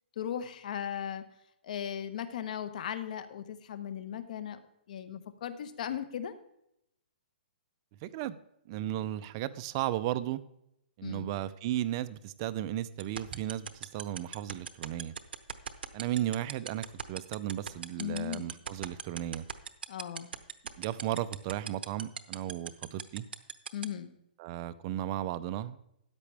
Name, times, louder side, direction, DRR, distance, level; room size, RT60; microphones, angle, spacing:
voice 1, 0.2-1.2 1.6-4.6 4.9-6.3 11.0-11.3 18.0-18.5 19.9-20.3 23.7-24.1, left 9 dB, 50° left, 11 dB, 1.1 m, -37 dB
voice 2, 8.0-8.4 8.7-10.4 11.0-15.1 15.9-19.4 20.8-23.3 24.4-25.8, right 13 dB, 25° right, 13 dB, 0.5 m, -35 dB
sound 1, 13.0-23.8, right 7 dB, 80° right, 0.9 m, -37 dB
13.5 x 9.9 x 3.4 m, 0.80 s
hypercardioid pair, 165°, 5 cm